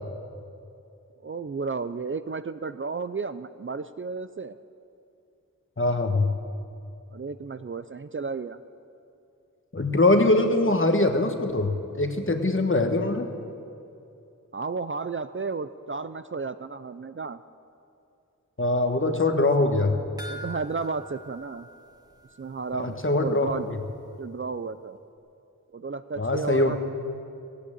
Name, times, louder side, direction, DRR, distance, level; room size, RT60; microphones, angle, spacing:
voice 1, 1.2-4.6 7.1-8.6 14.5-17.4 19.0-19.2 20.3-21.7 22.4-23.7 24.2-25.0 25.7-26.8, right 4 dB, 40° right, 12 dB, 0.4 m, -33 dB
voice 2, 5.8-6.3 9.7-11.7 12.0-13.3 18.6-20.0 22.7-23.8 26.2-26.8, left 2 dB, 40° left, 5 dB, 1.3 m, -23 dB
sound 1, 20.2-22.7 23.0-23.1 23.5-23.6, equal, 10° right, 1.4 m, -44 dB
17.0 x 8.7 x 8.7 m, 2.7 s
wide cardioid pair, 60°, 32 cm